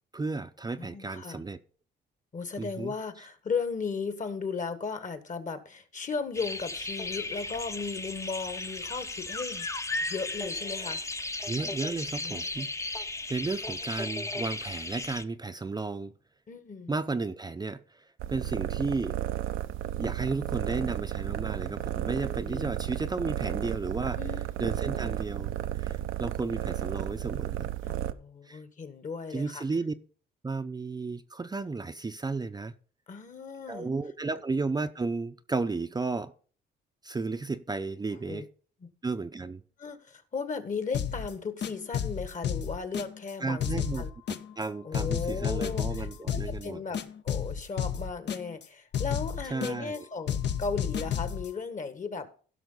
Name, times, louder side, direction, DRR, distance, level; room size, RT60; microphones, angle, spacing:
voice 1, 0.1-1.6 2.6-3.3 11.5-12.7 13.3-16.1 16.9-19.1 20.0-24.2 24.6-27.7 28.4-28.6 29.3-29.9 30.4-32.7 33.7-36.3 37.0-38.5 39.0-39.6 43.4-44.0 44.6-46.8 49.5-50.1, right 3 dB, 20° right, 0.6 m, -33 dB
voice 2, 0.8-1.4 2.3-9.7 10.1-11.0 12.2-12.5 16.5-16.9 21.6-21.9 22.4-22.6 24.2-24.5 27.9-29.6 33.1-33.9 38.3-38.4 38.8-38.9 39.8-44.1 44.8-52.3, left 5 dB, 40° left, 1.6 m, -36 dB
sound 1, 6.3-15.2, left 2 dB, 15° left, 0.7 m, -35 dB
sound 2, 18.2-28.1, right 13 dB, 85° right, 0.7 m, -33 dB
sound 3, 40.9-41.3 41.6-43.3 43.6-44.6 44.9-46.6 46.9-48.6 48.9-50.0 50.3-51.5, left 8 dB, 60° left, 0.9 m, -32 dB
16.0 x 5.9 x 3.9 m
cardioid pair, 90°, 20 cm